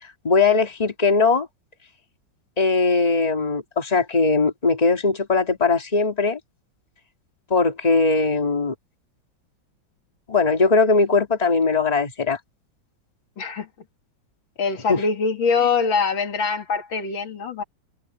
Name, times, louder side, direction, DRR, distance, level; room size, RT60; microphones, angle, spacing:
voice 1, 0.0-1.5 2.6-6.4 7.5-8.7 10.3-12.4 14.9-15.0, left 4 dB, 20° left, 2.3 m, -20 dB
voice 2, 13.4-13.7 14.6-17.6, left 5 dB, 80° left, 2.7 m, -23 dB
omnidirectional pair, 2.1 m